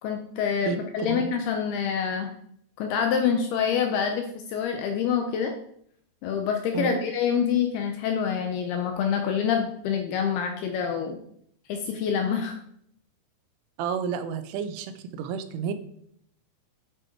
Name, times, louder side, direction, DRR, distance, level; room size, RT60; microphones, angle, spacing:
voice 1, 0.0-2.3 2.8-5.5 6.2-11.2 11.7-12.6, left 7 dB, 75° left, 4 dB, 2.4 m, -26 dB
voice 2, 13.8-15.7, right 7 dB, 90° right, 10 dB, 3.3 m, -31 dB
9.5 x 7.8 x 4.6 m, 0.69 s
omnidirectional pair, 5.4 m